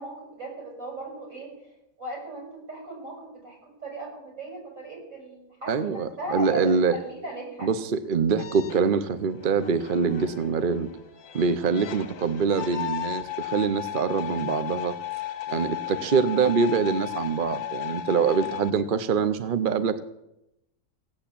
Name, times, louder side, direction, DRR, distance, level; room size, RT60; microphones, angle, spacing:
voice 1, 0.0-1.5 2.0-3.6 3.8-7.7 15.8-16.0 18.1-18.5, right 1 dB, 60° right, -2 dB, 7.0 m, -37 dB
voice 2, 5.7-6.9 7.6-10.9 11.3-14.9 15.5-20.0, right 5 dB, 45° right, 11 dB, 0.7 m, -24 dB
sound 1, 8.4-18.7, left 13 dB, 65° left, 1.2 m, -35 dB
17.0 x 8.4 x 8.5 m, 0.87 s
omnidirectional pair, 1.6 m